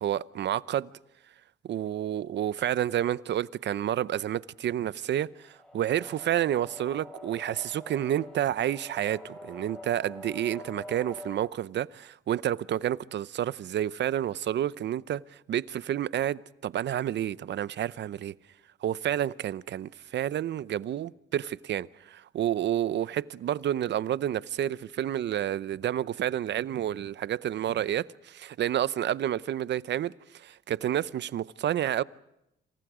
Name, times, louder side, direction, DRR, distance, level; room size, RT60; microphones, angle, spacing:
voice 1, 0.0-0.9 1.6-18.3 18.8-32.0, right 11 dB, 65° right, 0.8 m, -30 dB
sound 1, 5.3-11.5, left 1 dB, 5° left, 7.7 m, -46 dB
27.5 x 27.5 x 5.0 m
cardioid pair, 90°, 20 cm